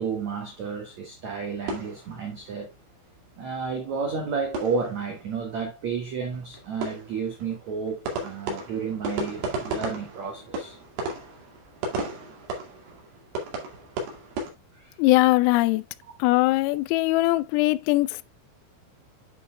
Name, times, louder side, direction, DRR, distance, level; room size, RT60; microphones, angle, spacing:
voice 1, 0.0-2.7 3.4-10.8 14.7-15.0, right 5 dB, 80° right, 1.6 m, -31 dB
sound 1, 1.7-2.8 3.1-3.2 3.5-3.6 3.9-5.4 5.6-5.7 6.0-14.5, right 2 dB, 60° right, 4.1 m, -35 dB
voice 2, 15.0-15.8 16.2-18.2, left 19 dB, 85° left, 3.2 m, -21 dB
11.0 x 6.5 x 2.2 m
omnidirectional pair, 5.9 m